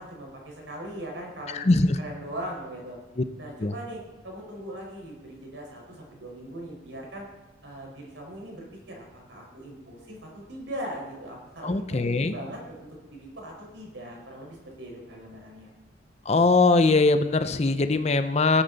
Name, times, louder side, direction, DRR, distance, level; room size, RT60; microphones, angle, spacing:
voice 1, 0.0-3.0 3.4-7.2 7.6-15.7, right 1 dB, 85° right, -1 dB, 4.8 m, -40 dB
voice 2, 1.5-2.0 3.2-3.3 3.6-3.7 11.6-12.3 16.3-18.6, left 3 dB, 35° left, 10 dB, 0.6 m, -21 dB
18.0 x 8.8 x 4.0 m, 1.2 s
head